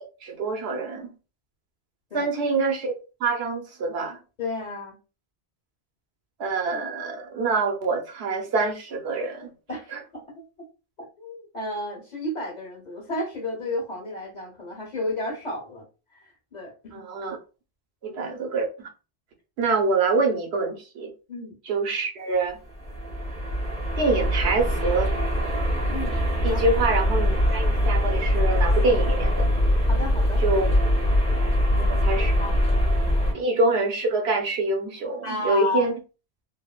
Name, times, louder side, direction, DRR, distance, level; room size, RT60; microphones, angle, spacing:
voice 1, 0.2-1.1 2.1-2.9 3.2-4.2 6.4-9.5 9.9-10.0 16.9-17.4 18.0-18.9 19.6-21.1 21.7-22.6 24.0-25.1 26.4-29.5 30.4-30.7 31.4-31.5 32.0-32.3 33.3-35.9, right 3 dB, 75° right, 1.0 m, -25 dB
voice 2, 4.4-5.0 9.7-10.4 11.0-15.9 16.1-17.0 21.3-21.6 25.9-26.2 26.5-26.6 29.8-30.4 31.7-32.0 32.4-32.6 35.2-35.9, left 2 dB, 45° left, 1.1 m, -32 dB
sound 1, 22.7-33.3, equal, 5° left, 0.7 m, -23 dB
3.5 x 2.0 x 2.3 m
omnidirectional pair, 1.1 m